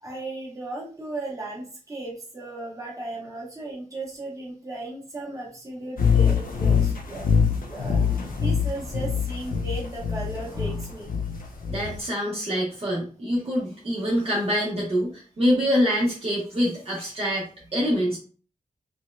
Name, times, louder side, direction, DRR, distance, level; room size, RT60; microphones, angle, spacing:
voice 1, 0.0-7.3 7.6-11.1, right 2 dB, 25° right, -4 dB, 1.1 m, -36 dB
sound 1, 6.0-12.0, left 6 dB, 80° left, 0.6 m, -24 dB
voice 2, 11.7-18.2, equal, 45° right, -5 dB, 0.9 m, -25 dB
4.3 x 2.1 x 2.3 m, 0.40 s
wide cardioid pair, 135°, 14 cm